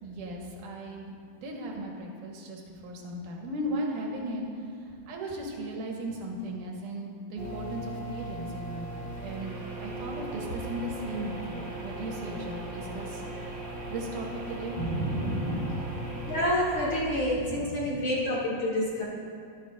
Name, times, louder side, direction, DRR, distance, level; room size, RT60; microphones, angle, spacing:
voice 1, 0.0-13.5 13.9-16.1 17.4-18.0, right 1 dB, 90° right, 0 dB, 2.7 m, -36 dB
sound 1, 7.4-17.1, right 2 dB, 40° right, 1.3 m, -38 dB
voice 2, 16.3-19.0, left 1 dB, 50° left, -6 dB, 1.7 m, -28 dB
12.5 x 11.0 x 2.4 m, 2.3 s
omnidirectional pair, 3.6 m